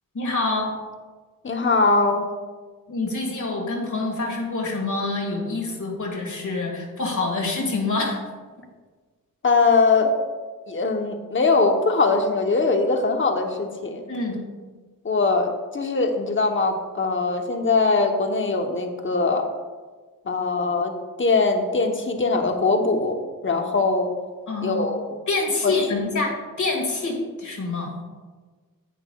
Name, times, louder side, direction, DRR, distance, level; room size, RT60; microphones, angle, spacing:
voice 1, 0.1-0.7 2.9-8.2 14.1-14.4 24.5-24.9 25.3-28.0, left 3 dB, 55° left, -2 dB, 2.0 m, -26 dB
voice 2, 1.4-2.2 9.4-10.1 10.7-14.1 15.0-19.5 20.2-23.2 23.4-24.1 24.6-25.2 25.6-25.8, left 3 dB, 35° left, 4 dB, 0.9 m, -21 dB
10.0 x 8.6 x 2.3 m, 1.4 s
wide cardioid pair, 85°, 34 cm